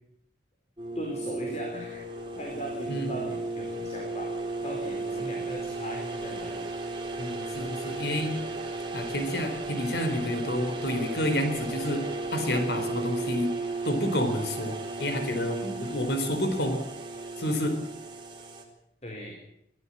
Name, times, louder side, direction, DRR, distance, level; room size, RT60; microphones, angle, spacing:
sound 1, 0.8-18.6, right 3 dB, 25° right, 4.2 m, -35 dB
voice 1, 0.9-2.0 2.3-6.7 15.1-15.3 19.0-19.4, equal, 40° left, 1 dB, 4.5 m, -38 dB
voice 2, 7.2-8.4 8.9-12.0 12.3-13.5 13.8-16.8 17.4-17.8, left 1 dB, 70° left, 7 dB, 4.1 m, -29 dB
23.5 x 16.5 x 8.8 m, 0.76 s
head